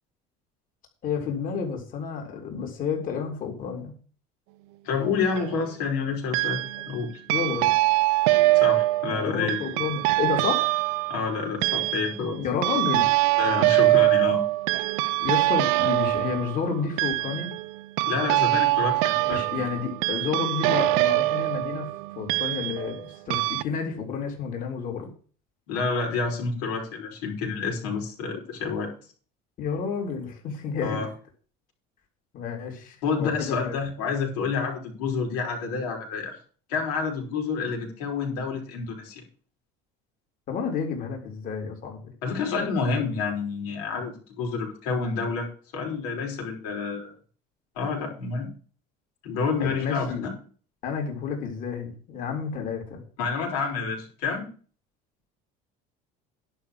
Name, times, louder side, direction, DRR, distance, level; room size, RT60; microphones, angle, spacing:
voice 1, 1.0-3.9 6.7-6.8 7.3-7.7 9.1-10.7 12.4-13.1 15.2-17.5 19.2-25.1 29.6-31.1 32.3-33.8 40.5-42.0 49.6-50.3 50.8-53.0, left 6 dB, 45° left, 2 dB, 3.9 m, -30 dB
voice 2, 4.8-6.6 6.9-7.1 8.5-9.6 11.1-12.4 13.4-14.4 18.1-19.7 25.7-28.9 30.8-31.1 33.0-36.4 36.7-39.2 42.2-45.5 45.7-47.1 47.8-48.5 49.2-50.3 53.2-54.5, left 5 dB, 85° left, 1 dB, 5.2 m, -29 dB
sound 1, 5.0-5.6 6.3-7.0 7.3-23.0 23.3-23.6, right 20 dB, 80° right, 0.6 m, -24 dB
11.0 x 5.9 x 8.0 m, 0.41 s
cardioid pair, 130°, 19 cm